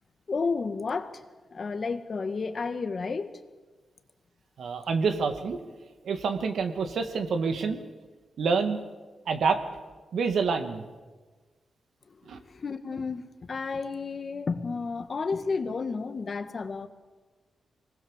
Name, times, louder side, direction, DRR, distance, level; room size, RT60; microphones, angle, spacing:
voice 1, 0.3-1.2 1.5-3.4 12.1-12.2 12.5-16.9, left 4 dB, 50° left, 8 dB, 1.8 m, -32 dB
voice 2, 4.6-5.6 6.0-7.8 8.4-8.8 9.3-9.6 10.1-10.8 12.3-12.4, right 5 dB, 80° right, 6 dB, 2.3 m, -27 dB
25.0 x 20.0 x 7.4 m, 1.3 s
cardioid pair, 80°, 0 cm